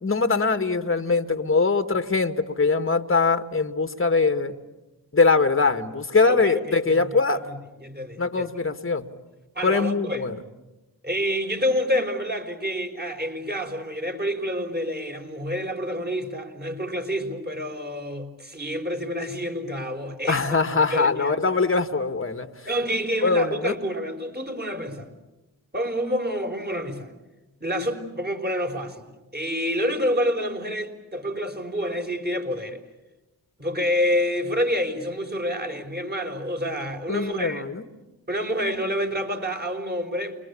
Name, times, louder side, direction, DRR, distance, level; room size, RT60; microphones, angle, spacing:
voice 1, 0.0-4.6 5.1-7.4 8.2-9.1 9.6-10.4 20.3-22.5 23.2-23.8 37.1-37.8, left 4 dB, 30° left, 9 dB, 2.0 m, -22 dB
voice 2, 6.3-7.1 7.5-8.5 9.6-10.3 11.0-20.6 20.9-21.3 22.7-25.1 25.7-27.1 27.6-32.8 33.6-37.6 38.3-40.4, equal, 20° right, 4 dB, 5.3 m, -28 dB
29.0 x 22.5 x 8.6 m, 1.0 s
supercardioid pair, 45°, 44 cm